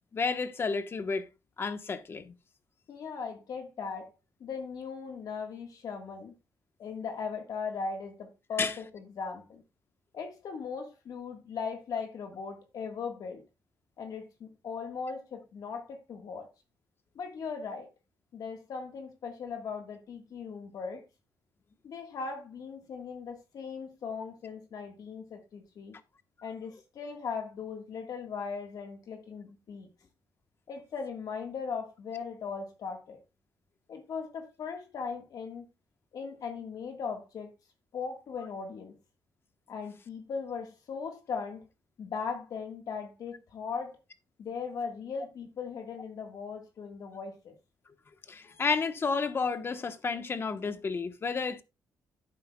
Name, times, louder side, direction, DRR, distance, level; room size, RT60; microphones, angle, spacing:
voice 1, 0.1-1.3 1.6-2.3 8.6-8.7 48.3-51.6, left 4 dB, 35° left, 1.1 m, -31 dB
voice 2, 2.9-4.1 4.4-6.3 6.8-9.6 10.1-13.4 14.0-16.5 17.1-17.9 18.3-21.0 21.8-26.0 26.4-29.9 30.7-33.2 33.9-35.7 36.1-37.5 37.9-38.9 39.7-41.7 42.0-44.0 44.4-47.5, left 5 dB, 60° left, 1.6 m, -38 dB
11.0 x 9.2 x 2.3 m
cardioid pair, 115°, 7 cm